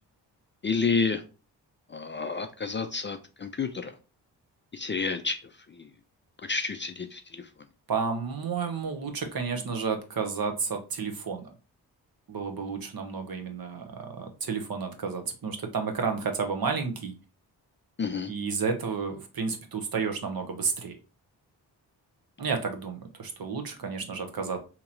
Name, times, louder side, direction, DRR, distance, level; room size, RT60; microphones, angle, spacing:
voice 1, 0.6-1.2 1.9-3.9 4.7-5.4 5.7-5.9 6.4-7.5 18.0-18.3, left 4 dB, 25° left, 8 dB, 0.4 m, -30 dB
voice 2, 7.9-11.4 12.3-17.1 18.3-21.0 22.4-24.6, right 5 dB, 55° right, 5 dB, 1.0 m, -31 dB
3.0 x 2.8 x 3.8 m, 0.33 s
supercardioid pair, 40°, 44 cm